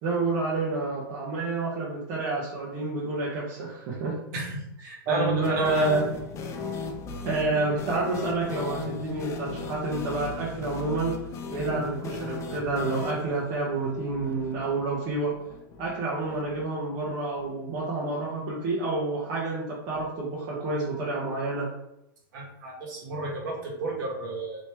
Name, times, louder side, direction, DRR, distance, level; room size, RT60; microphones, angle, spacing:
voice 1, 0.0-4.1 5.1-6.0 7.2-11.1 11.5-15.3 15.8-21.7, right 3 dB, 40° right, -6 dB, 0.9 m, -29 dB
voice 2, 4.3-6.0 22.3-24.6, right 2 dB, 55° right, -3 dB, 1.4 m, -32 dB
sound 1, 5.4-17.2 17.4-17.5 17.8-17.9 19.9-20.1, left 4 dB, 25° left, 0.4 m, -37 dB
3.0 x 2.9 x 3.4 m, 0.83 s
hypercardioid pair, 125°, 12 cm